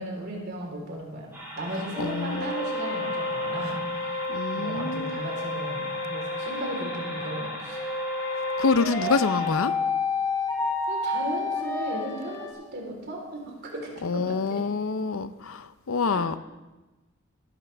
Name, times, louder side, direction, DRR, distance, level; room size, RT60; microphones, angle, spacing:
voice 1, 0.0-3.9 4.5-7.8 10.9-14.6 16.1-16.4, right 1 dB, 55° right, -1 dB, 3.9 m, -36 dB
sound 1, 1.3-9.5, equal, 10° right, 5.7 m, -40 dB
sound 2, 1.9-12.5, left 3 dB, 15° left, 2.2 m, -30 dB
voice 2, 2.0-2.5 4.3-5.2 8.6-9.7 14.0-16.4, left 4 dB, 85° left, 13 dB, 0.6 m, -26 dB
19.0 x 12.0 x 3.5 m, 1.1 s
head